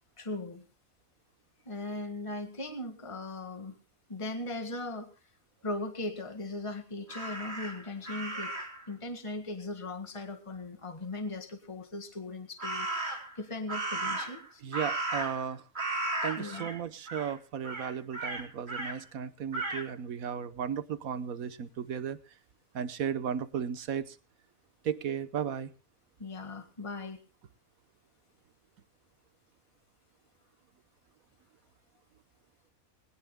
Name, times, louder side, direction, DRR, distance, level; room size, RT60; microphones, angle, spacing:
voice 1, 0.2-0.6 1.7-3.7 4.1-5.1 5.6-8.5 8.9-14.6 16.4-16.7 26.2-27.2, left 2 dB, 20° left, 6 dB, 1.8 m, -38 dB
Crow, 7.1-8.8 12.6-13.3 13.7-15.5 15.8-16.8 17.1-17.3 17.6-19.0 19.5-19.9, right 2 dB, 45° right, 3.4 m, -35 dB
voice 2, 14.6-15.6 16.2-22.2 22.7-24.2 24.8-25.7, right 8 dB, 80° right, 13 dB, 1.4 m, -35 dB
21.0 x 18.5 x 2.2 m, 0.34 s
omnidirectional pair, 1.5 m